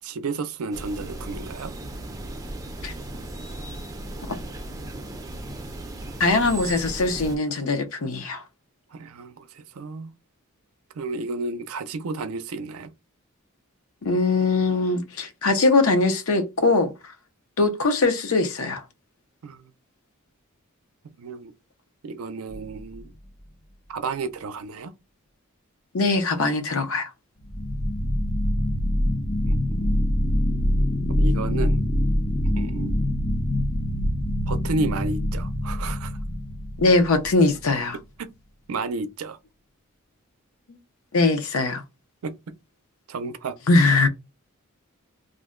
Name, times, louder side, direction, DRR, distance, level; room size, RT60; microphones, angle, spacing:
voice 1, 0.0-1.7 8.9-10.1 11.0-12.9 19.4-19.6 21.2-21.5 22.0-23.1 23.9-24.9 29.4-30.1 31.1-31.8 32.6-33.1 34.5-36.2 38.2-38.3 38.7-39.4 42.2-42.3 43.1-43.6, right 3 dB, 80° right, 0.5 m, -32 dB
sound 1, 0.7-7.4, right 1 dB, 15° right, 0.5 m, -36 dB
voice 2, 6.2-8.4 14.0-16.9 17.6-18.8 25.9-27.1 36.8-38.0 40.7-40.8 41.1-41.8 43.7-44.1, left 3 dB, 70° left, 0.6 m, -21 dB
sound 2, 22.5-23.1 27.4-37.6, left 1 dB, 50° left, 1.0 m, -24 dB
2.5 x 2.1 x 3.6 m
head